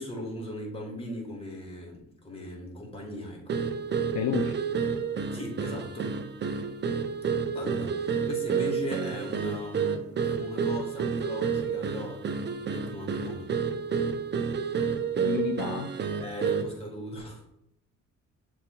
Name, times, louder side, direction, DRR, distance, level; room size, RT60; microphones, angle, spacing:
voice 1, 0.0-3.6 5.3-6.1 7.5-13.5 16.2-17.4, left 1 dB, 20° left, -1 dB, 1.5 m, -38 dB
sound 1, 3.5-16.8, right 6 dB, 35° right, 0.5 m, -30 dB
voice 2, 4.1-4.6 15.2-15.9, left 8 dB, 70° left, 6 dB, 0.5 m, -30 dB
6.6 x 3.2 x 2.3 m, 0.80 s
cardioid pair, 90°, 30 cm